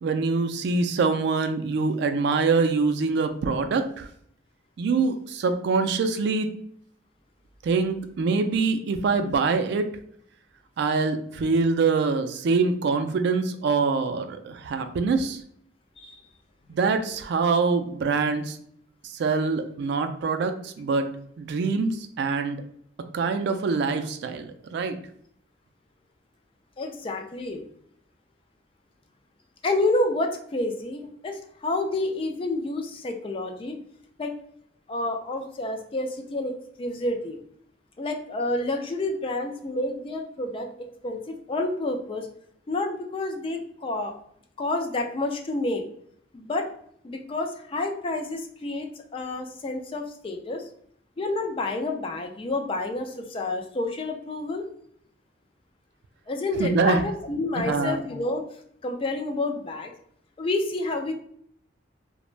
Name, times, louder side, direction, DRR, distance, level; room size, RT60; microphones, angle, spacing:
voice 1, 0.0-4.1 4.8-6.5 7.6-9.8 10.8-15.4 16.7-18.6 19.0-21.1 21.4-22.6 23.1-25.0 56.6-57.0 57.6-58.0, right 4 dB, 65° right, 7 dB, 0.3 m, -24 dB
voice 2, 26.8-27.6 29.6-33.8 34.2-34.3 34.9-37.4 38.0-40.7 41.0-42.3 42.7-44.1 44.6-45.8 46.3-46.7 47.0-50.6 51.2-54.6 56.3-58.5 58.8-59.9 60.4-61.1, left 2 dB, 30° left, 3 dB, 0.3 m, -29 dB
3.1 x 2.1 x 2.4 m, 0.66 s
head